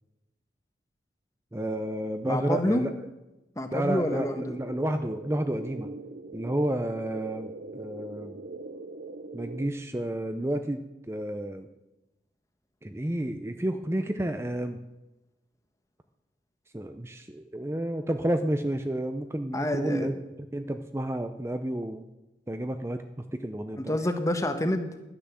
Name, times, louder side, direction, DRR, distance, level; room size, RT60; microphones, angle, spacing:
voice 1, 1.5-2.9 3.7-5.9 6.3-8.4 9.3-11.7 12.8-14.8 16.7-20.1 20.5-22.1 22.5-24.0, right 1 dB, 15° right, 7 dB, 0.5 m, -31 dB
voice 2, 2.3-2.8 3.6-4.6 19.5-20.1 23.9-25.0, left 1 dB, 20° left, 7 dB, 1.2 m, -28 dB
sound 1, 4.3-9.7, right 2 dB, 60° right, 0.9 m, -42 dB
12.0 x 10.0 x 7.5 m, 1.0 s
head